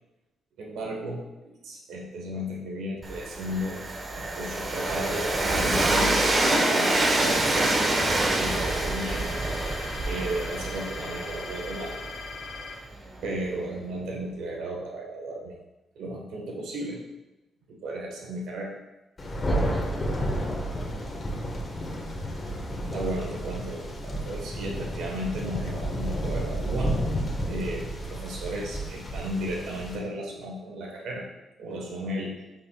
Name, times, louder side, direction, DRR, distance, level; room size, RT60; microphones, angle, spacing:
voice 1, 0.6-3.8 4.1-7.4 8.3-9.4 10.0-12.0 13.2-15.5 15.9-17.0 17.7-18.8 22.9-27.0 27.4-31.3 31.6-32.4, equal, 85° right, 0 dB, 1.2 m, -34 dB
Train, 3.0-12.9, right 2 dB, 35° right, 1.1 m, -26 dB
sound 1, 5.9-12.7, left 5 dB, 75° left, 1.1 m, -40 dB
voice 2, 12.9-13.2 19.4-21.2 31.7-31.9, equal, 5° right, 0 dB, 1.6 m, -44 dB
Thunder, 19.2-30.0, right 1 dB, 35° left, 1.4 m, -31 dB
8.5 x 5.4 x 2.3 m, 0.98 s
cardioid pair, 80°, 0 cm